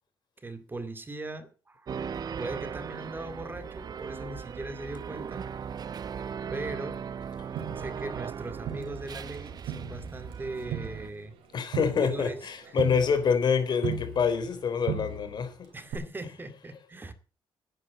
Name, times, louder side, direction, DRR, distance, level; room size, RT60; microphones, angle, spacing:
voice 1, 0.4-2.0 2.4-5.4 6.5-7.0 7.8-11.3 11.8-12.8 15.7-17.1, right 2 dB, 25° right, 2.3 m, -39 dB
sound 1, 1.9-11.1, right 7 dB, 50° right, 0.8 m, -38 dB
Crowd, 7.6-9.4 9.7-14.6 14.9-15.5 15.9-16.0, right 7 dB, 90° right, 3.5 m, -38 dB
voice 2, 11.5-15.7, left 6 dB, 55° left, 3.4 m, -26 dB
10.0 x 9.8 x 8.4 m
cardioid pair, 85°, 9 cm